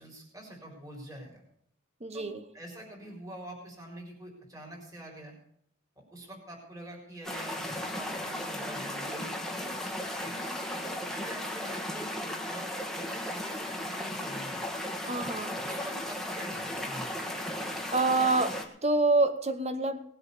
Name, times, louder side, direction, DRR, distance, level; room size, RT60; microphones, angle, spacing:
voice 1, 0.0-1.4 2.1-5.4 6.0-9.7 10.2-12.7 12.9-14.6 15.6-17.1, right 1 dB, 15° right, -1 dB, 4.4 m, -46 dB
voice 2, 2.0-2.4 15.1-15.5 17.9-20.0, right 2 dB, 30° right, 10 dB, 1.3 m, -27 dB
sound 1, 7.2-18.6, left 1 dB, ahead, 1.6 m, -35 dB
19.0 x 8.0 x 6.9 m, 0.67 s
head